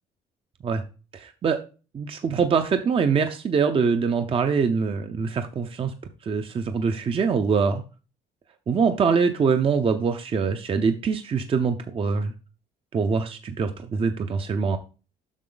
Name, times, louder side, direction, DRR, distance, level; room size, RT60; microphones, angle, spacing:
voice 1, 1.1-1.6 1.9-5.9 6.2-7.8 8.7-12.3 12.9-14.8, right 5 dB, 35° right, 7 dB, 0.7 m, -24 dB
7.3 x 5.9 x 3.9 m, 0.34 s
cardioid pair, 110°, 17 cm